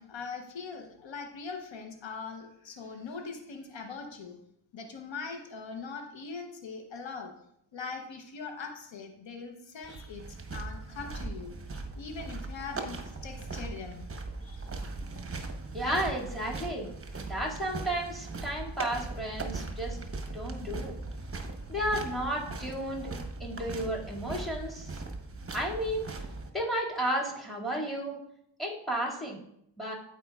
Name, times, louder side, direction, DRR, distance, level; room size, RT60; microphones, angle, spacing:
voice 1, 0.0-4.4 4.7-7.3 7.7-10.2 10.5-11.6 11.9-14.1 14.4-14.7, left 5 dB, 80° left, 4 dB, 0.9 m, -41 dB
sound 1, 9.8-26.5, right 3 dB, 30° right, 0.9 m, -39 dB
voice 2, 15.7-16.9 17.3-20.0 20.3-21.0 21.7-23.1 23.4-24.9 25.5-26.1 26.5-28.2 28.6-29.4 29.8-29.9, right 1 dB, ahead, -2 dB, 2.0 m, -32 dB
13.0 x 4.5 x 2.3 m, 0.74 s
wide cardioid pair, 75°, 45 cm